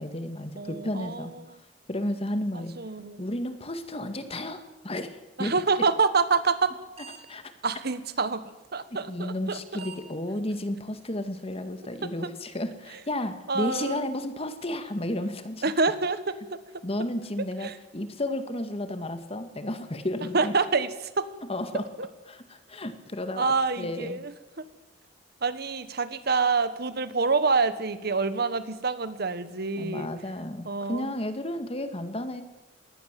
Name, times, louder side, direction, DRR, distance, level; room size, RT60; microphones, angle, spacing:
voice 1, 0.0-1.3 1.9-2.7 3.2-5.5 7.3-7.4 9.1-15.6 16.8-20.5 21.5-21.8 22.3-24.2 29.8-32.4, left 1 dB, 35° left, 9 dB, 2.0 m, -32 dB
voice 2, 0.6-1.3 2.5-3.2 5.4-6.7 7.6-8.4 8.7-9.8 12.0-12.3 13.5-14.0 15.6-16.4 17.6-17.7 20.3-21.3 22.0-22.1 23.4-24.3 24.6-24.7 25.4-30.1 30.6-31.1, right 4 dB, 60° right, 13 dB, 1.4 m, -27 dB
sound 1, 6.4-6.7 7.0-7.2 7.5-7.6 8.5-8.6 9.5-9.6 9.8-10.0 10.5-10.6 11.0-11.1 11.5-11.6, right 6 dB, 35° right, 3.2 m, -44 dB
21.5 x 18.5 x 7.6 m, 1.1 s
head